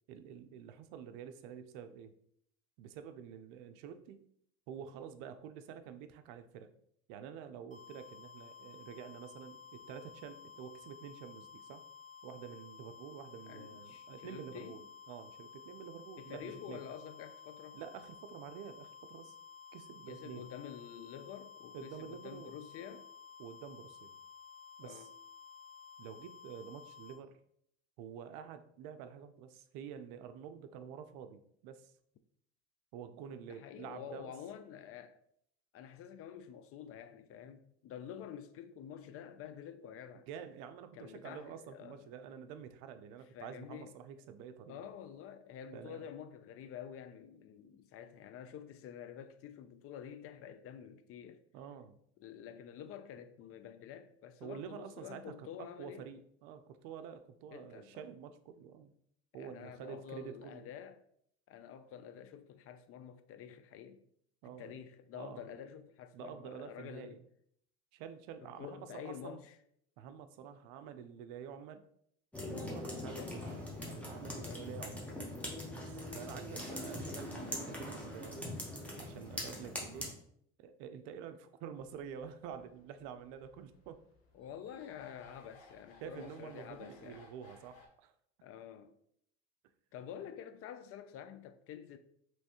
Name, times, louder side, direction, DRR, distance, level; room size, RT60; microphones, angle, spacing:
voice 1, 0.1-2.1 2.8-4.2 4.7-6.7 7.1-11.9 12.2-16.8 17.7-19.3 19.7-20.5 21.7-22.5 23.4-24.1 24.8-25.1 26.0-27.4 28.0-31.9 32.9-34.3 40.3-44.9 45.7-46.1 51.5-52.0 54.4-58.9 59.3-60.7 64.4-64.9 65.1-65.5 66.1-67.2 67.9-69.4 70.0-71.8 72.5-75.1 75.7-78.5 79.0-80.1 80.6-84.0 86.0-88.1, right 8 dB, 70° right, 0.5 m, -48 dB
sound 1, 7.7-27.2, left 6 dB, 25° left, 1.2 m, -54 dB
voice 2, 13.5-14.8 16.2-17.8 20.1-23.1 24.8-25.1 33.5-35.2 35.7-40.3 40.9-42.1 43.3-43.9 44.7-51.4 52.2-56.1 57.5-58.1 59.4-61.0 61.5-64.0 64.4-67.2 68.4-69.6 73.0-73.4 74.3-74.7 75.1-75.2 84.3-87.2 88.4-88.9 89.9-92.0, left 9 dB, 45° left, 0.4 m, -49 dB
sound 2, 72.3-80.1, left 1 dB, 5° left, 1.0 m, -42 dB
sound 3, 81.8-87.9, left 3 dB, 80° left, 1.0 m, -62 dB
3.1 x 3.1 x 2.9 m
supercardioid pair, 90°, 32 cm